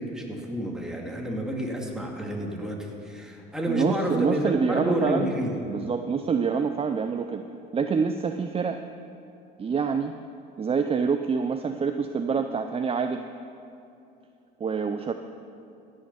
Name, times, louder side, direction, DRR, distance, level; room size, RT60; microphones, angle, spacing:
voice 1, 0.0-4.4 4.7-5.7, equal, 5° right, -1 dB, 2.3 m, -29 dB
voice 2, 3.7-5.3 5.7-7.4 7.7-8.8 9.6-10.1 10.6-13.3 14.6-15.1, right 5 dB, 30° right, 7 dB, 0.5 m, -26 dB
16.0 x 6.5 x 7.0 m, 2.7 s
supercardioid pair, 80°, 21 cm